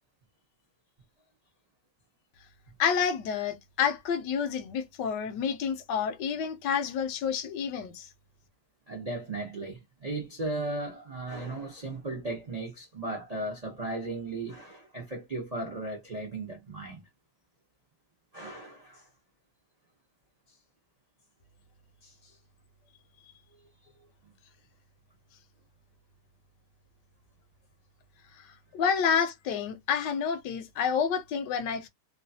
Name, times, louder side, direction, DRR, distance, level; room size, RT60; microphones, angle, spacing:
voice 1, 2.8-8.1 28.7-31.9, left 7 dB, 75° left, 1.1 m, -29 dB
voice 2, 8.9-17.0 18.3-19.1 22.0-22.4, right 2 dB, 55° right, 0.4 m, -36 dB
3.0 x 2.3 x 2.6 m
omnidirectional pair, 2.0 m